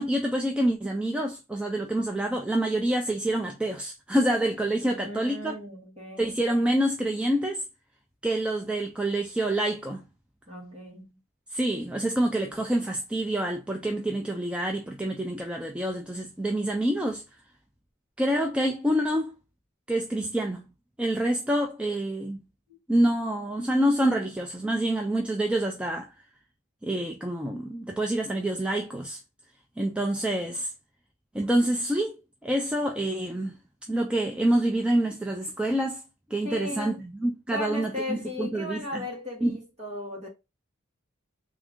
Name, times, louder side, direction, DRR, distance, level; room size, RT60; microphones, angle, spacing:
voice 1, 0.0-5.6 6.2-7.6 8.2-10.1 11.5-17.2 18.2-19.3 19.9-20.7 21.0-22.4 22.9-26.1 26.8-29.2 29.8-30.7 31.3-32.2 32.4-33.6 33.9-36.0 36.3-39.0 39.4-39.6, right 1 dB, 5° right, 0.3 m, -27 dB
voice 2, 4.8-6.3 10.5-11.1 36.4-37.0 37.5-40.3, left 2 dB, 30° right, 1.7 m, -36 dB
3.4 x 2.6 x 3.5 m
head